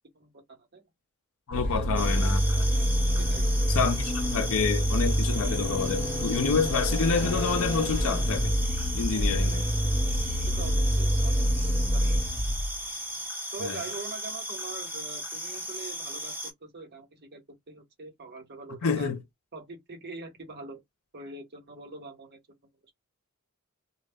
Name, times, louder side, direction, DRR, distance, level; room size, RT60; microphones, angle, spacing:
voice 1, 0.1-0.8 1.6-2.0 3.3-3.5 9.1-9.4 10.6-12.0 13.5-19.1 19.5-20.8 21.1-22.4, right 3 dB, 50° right, 1.0 m, -43 dB
voice 2, 1.5-2.7 3.7-8.6 8.9-9.6 13.6-13.8 18.8-19.2, left 5 dB, 65° left, 0.5 m, -28 dB
sound 1, 1.5-12.8, equal, 25° left, 0.7 m, -27 dB
sound 2, 2.0-16.5, equal, 10° right, 0.7 m, -36 dB
2.3 x 2.0 x 3.4 m
head